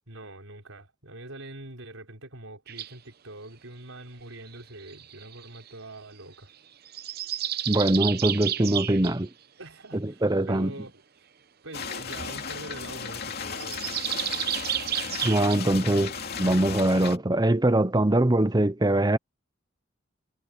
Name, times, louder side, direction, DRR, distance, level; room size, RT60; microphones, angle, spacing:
voice 1, 0.1-6.5 9.6-11.0 11.6-14.0, right 2 dB, 85° right, 5.5 m, -44 dB
sound 1, 2.7-2.9 4.4-5.7 6.8-9.2 13.6-15.6, right 11 dB, 50° right, 0.8 m, -31 dB
voice 2, 7.7-9.3 10.0-10.7 15.2-19.2, right 1 dB, 20° right, 0.8 m, -23 dB
sound 2, 11.7-17.2, left 6 dB, 50° left, 2.8 m, -35 dB
head